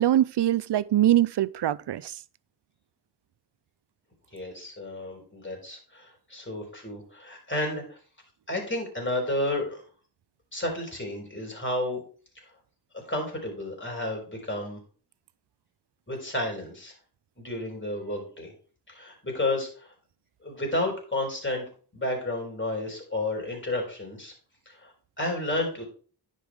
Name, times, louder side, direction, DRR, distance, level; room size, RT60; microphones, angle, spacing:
voice 1, 0.0-2.2, right 12 dB, 80° right, 0.5 m, -23 dB
voice 2, 4.3-8.0 8.5-9.8 10.5-12.0 12.9-14.8 16.1-16.9 17.4-18.5 18.9-19.9 20.4-21.6 21.9-24.3 24.7-24.9 25.2-25.8, left 1 dB, 30° left, 4.2 m, -31 dB
10.0 x 5.5 x 4.8 m
wide cardioid pair, 75°, 41 cm